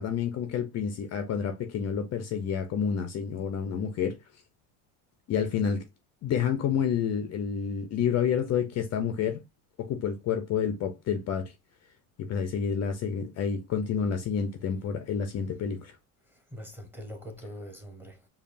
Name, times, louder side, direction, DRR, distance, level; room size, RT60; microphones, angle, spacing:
voice 1, 0.0-4.2 5.3-5.9 6.2-9.4 9.8-11.5 12.2-16.0, left 7 dB, 40° left, 0.5 m, -29 dB
voice 2, 16.3-18.3, equal, 5° right, 1.0 m, -43 dB
5.2 x 2.3 x 2.5 m
supercardioid pair, 110°, 42 cm